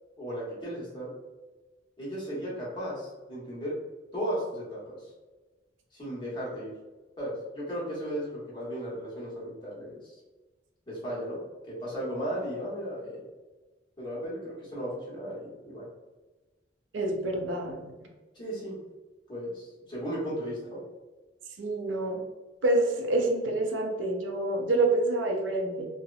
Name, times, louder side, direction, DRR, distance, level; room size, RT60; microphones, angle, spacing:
voice 1, 0.2-1.1 2.0-3.8 4.1-5.1 5.9-6.7 7.2-10.1 10.9-11.4 11.7-13.2 14.0-15.9 18.3-18.8 19.3-20.8, equal, 25° left, -7 dB, 0.9 m, -35 dB
voice 2, 16.9-18.1 21.6-22.2 22.6-25.9, right 2 dB, 90° right, 2 dB, 0.5 m, -27 dB
2.7 x 2.0 x 2.4 m, 1.2 s
head